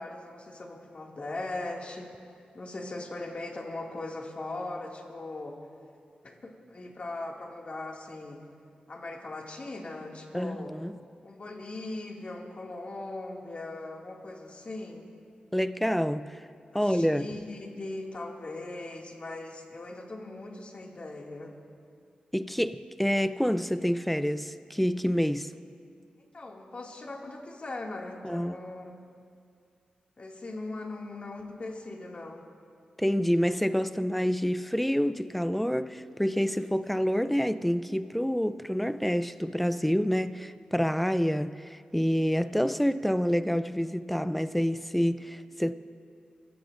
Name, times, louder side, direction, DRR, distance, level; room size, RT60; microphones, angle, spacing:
voice 1, 0.0-2.1 2.5-5.6 6.2-8.4 8.9-10.7 11.2-15.1 16.8-21.6 26.3-28.9 30.2-32.4, left 2 dB, 45° left, 2.3 m, -39 dB
voice 2, 10.3-10.9 15.5-16.4 16.7-17.3 22.3-25.5 28.2-28.5 33.0-45.7, equal, 5° left, 0.5 m, -27 dB
30.0 x 15.5 x 2.6 m
cardioid pair, 70°, 3 cm